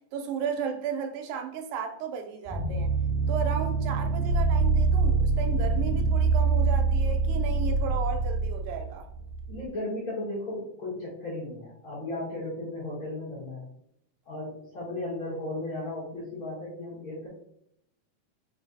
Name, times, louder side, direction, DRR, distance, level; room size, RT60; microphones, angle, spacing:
voice 1, 0.1-2.9 3.3-9.1, right 6 dB, 90° right, 2.2 m, -34 dB
sound 1, 2.5-9.6, right 4 dB, 75° right, 2.1 m, -25 dB
voice 2, 9.5-13.6 14.3-17.3, left 2 dB, 50° left, 1.9 m, -35 dB
5.0 x 3.2 x 2.6 m
omnidirectional pair, 3.7 m